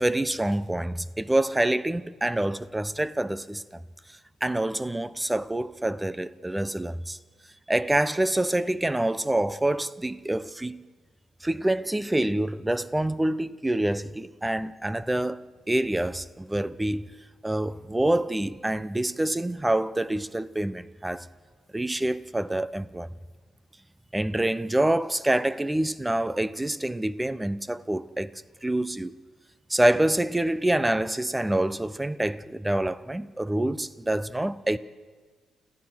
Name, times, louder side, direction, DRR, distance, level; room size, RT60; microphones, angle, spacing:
voice 1, 0.0-3.8 4.4-7.2 7.7-10.8 11.4-15.4 15.7-17.1 17.4-21.3 21.7-23.1 24.1-28.3 28.6-29.1 29.7-34.8, right 1 dB, 10° right, 0.7 m, -26 dB
29.5 x 14.5 x 6.2 m
cardioid pair, 90°, 0 cm